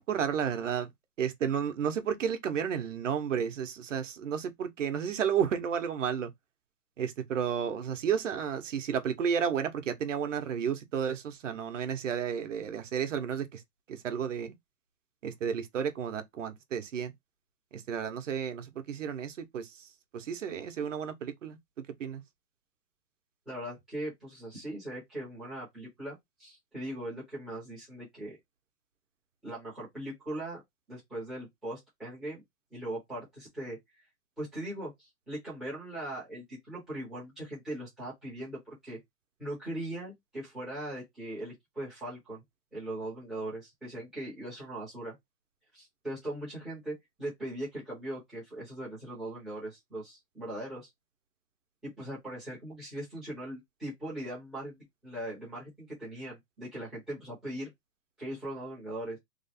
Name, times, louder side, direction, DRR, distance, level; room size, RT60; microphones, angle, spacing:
voice 1, 0.1-0.9 1.2-6.3 7.0-13.6 13.9-14.5 15.2-17.1 17.7-19.7 20.1-21.6 22.0-22.2, right 7 dB, 50° right, 0.9 m, -32 dB
voice 2, 23.5-28.4 29.4-30.6 30.9-32.4 32.7-33.8 34.4-39.0 39.4-42.4 42.7-45.1 45.7-50.9 51.8-57.7 58.2-59.2, right 1 dB, ahead, 0.7 m, -40 dB
3.1 x 2.4 x 4.1 m
hypercardioid pair, 170°, 47 cm